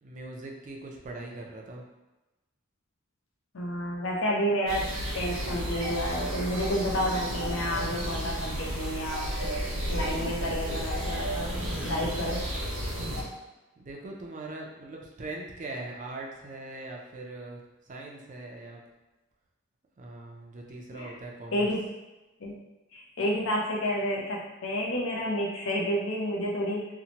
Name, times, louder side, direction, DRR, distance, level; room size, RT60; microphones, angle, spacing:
voice 1, 0.0-1.8 13.8-18.8 20.0-21.7, right 2 dB, 40° right, 0 dB, 0.4 m, -41 dB
voice 2, 3.5-4.8 5.1-9.6 9.9-11.5 11.8-12.4 20.9-21.1 21.5-21.8 22.4-22.6 22.9-26.9, equal, 70° left, -2 dB, 0.6 m, -30 dB
sound 1, 4.7-13.2, equal, 90° right, 0.8 m, -32 dB
2.8 x 2.1 x 2.8 m, 1.1 s
head